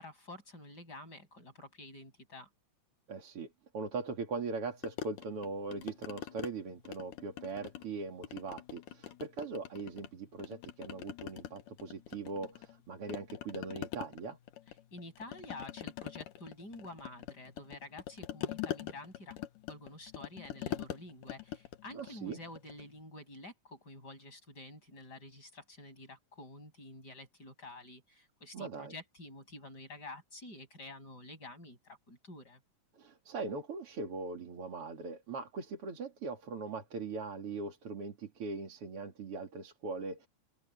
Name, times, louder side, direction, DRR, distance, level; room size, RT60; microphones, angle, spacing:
voice 1, 0.0-2.5 14.9-19.4 19.7-32.6, left 2 dB, 30° left, 8.3 m, -49 dB
voice 2, 3.1-14.4 21.9-22.4 28.5-28.9 33.0-40.3, right 4 dB, 45° right, 3.3 m, -40 dB
sound 1, 4.8-6.5 6.8-7.9 8.2-10.1 10.4-12.8 13.1-22.9, left 12 dB, 90° left, 2.9 m, -43 dB
open air
omnidirectional pair, 3.6 m